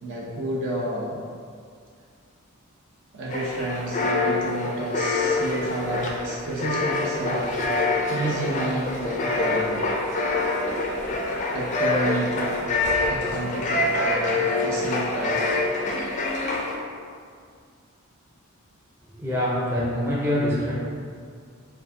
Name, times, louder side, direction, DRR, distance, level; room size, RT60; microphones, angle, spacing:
voice 1, 0.0-1.2 3.1-7.7 8.1-9.8 11.5-12.7 13.1-15.4, right 1 dB, 60° right, -5 dB, 0.8 m, -30 dB
sound 1, 3.3-16.8, left 2 dB, 35° left, 0.4 m, -26 dB
voice 2, 19.2-20.7, left 1 dB, 10° right, -8 dB, 0.6 m, -24 dB
4.6 x 2.5 x 2.7 m, 2.2 s
head